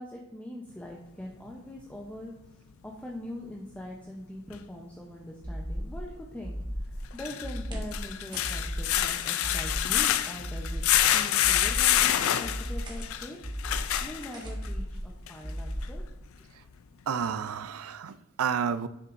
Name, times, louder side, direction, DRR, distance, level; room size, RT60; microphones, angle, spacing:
voice 1, 0.0-10.8 11.1-16.0, left 1 dB, 5° left, -2 dB, 0.6 m, -42 dB
sound 1, 4.5-4.6 7.0-14.7 15.3-15.4 15.8-15.9, left 12 dB, 70° left, 0.4 m, -27 dB
sound 2, 5.4-6.1 6.4-7.1 7.4-8.0 8.4-9.1 9.4-10.0 10.4-11.1 11.4-12.0 12.4-13.1 13.4-14.1 14.4-15.1 15.4-16.1, equal, 60° right, 2.3 m, -35 dB
sound 3, 7.7-8.1 8.3-8.6 8.9-9.0 9.4-9.8 10.7-11.2 12.0-12.2 12.8-13.1 14.3-14.7, right 2 dB, 20° right, 1.3 m, -46 dB
voice 2, 17.1-18.9, right 7 dB, 85° right, 13 dB, 0.4 m, -30 dB
7.7 x 6.6 x 2.5 m, 0.92 s
head